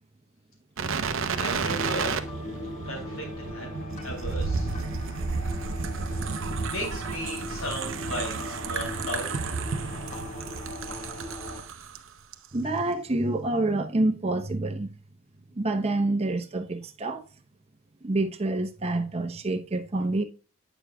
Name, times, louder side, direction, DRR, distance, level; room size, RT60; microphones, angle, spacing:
sound 1, 0.8-12.0 12.3-12.5, right 4 dB, 60° right, 0.6 m, -32 dB
voice 1, 1.4-2.2 2.9-3.3 3.5-3.7 4.0-4.7 6.1-6.2 6.7-9.5, equal, 75° left, 2.9 m, -36 dB
sound 2, 1.4-11.6, left 1 dB, 35° left, 1.5 m, -40 dB
voice 2, 12.5-14.9 15.6-17.2 18.0-20.2, right 2 dB, 30° right, 0.8 m, -27 dB
8.9 x 6.6 x 2.2 m
head